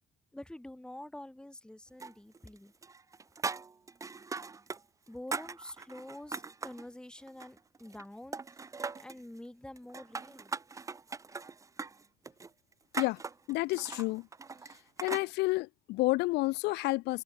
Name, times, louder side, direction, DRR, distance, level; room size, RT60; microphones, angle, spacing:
voice 1, 0.3-2.7 5.1-8.6 9.0-10.5, left 1 dB, 5° left, 2.3 m, -47 dB
sound 1, 2.0-2.6 2.8-4.8 5.1-6.8 7.3-8.1 8.3-9.2 9.8-15.3, right 4 dB, 20° right, 0.7 m, -40 dB
voice 2, 13.5-14.3 15.0-17.2, left 21 dB, 85° left, 0.6 m, -30 dB
cardioid pair, 110°, 17 cm